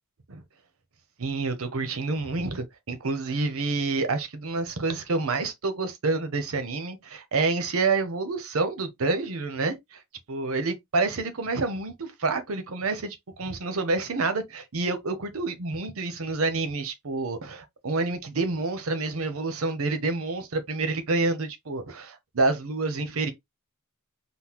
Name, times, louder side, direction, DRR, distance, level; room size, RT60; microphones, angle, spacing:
voice 1, 1.2-10.0 10.3-23.3, right 3 dB, 70° right, 0.8 m, -28 dB
3.7 x 2.1 x 2.9 m
head